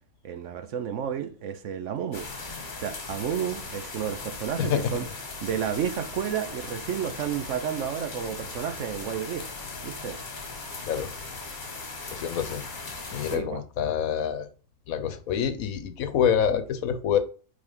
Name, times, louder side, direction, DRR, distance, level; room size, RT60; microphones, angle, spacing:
voice 1, 0.2-2.3 2.8-5.1 5.4-9.5 9.8-10.2 13.3-13.6, right 8 dB, 65° right, 0.9 m, -31 dB
sound 1, 2.1-13.4, left 3 dB, 35° left, 1.3 m, -38 dB
voice 2, 4.6-4.9 10.8-11.1 12.1-12.6 13.1-14.5 14.9-17.2, left 8 dB, 75° left, 1.2 m, -26 dB
5.2 x 4.2 x 5.3 m
omnidirectional pair, 1.5 m